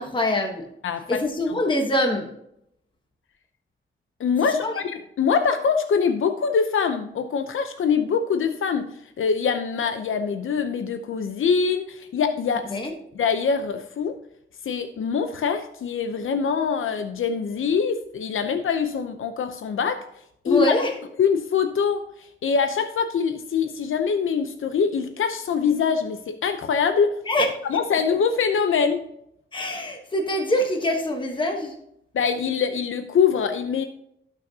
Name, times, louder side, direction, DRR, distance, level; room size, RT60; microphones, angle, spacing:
voice 1, 0.0-0.7 1.1-2.3 4.5-4.7 12.7-12.9 20.5-20.9 27.3-27.5 29.5-31.7, left 1 dB, 25° left, 3 dB, 1.2 m, -24 dB
voice 2, 0.8-1.2 4.2-8.9 9.2-12.7 13.2-14.2 14.6-20.0 20.4-20.8 21.2-27.2 27.7-29.1 32.1-33.9, left 6 dB, 90° left, 7 dB, 0.7 m, -24 dB
17.5 x 6.2 x 2.8 m, 0.78 s
wide cardioid pair, 155°, 20 cm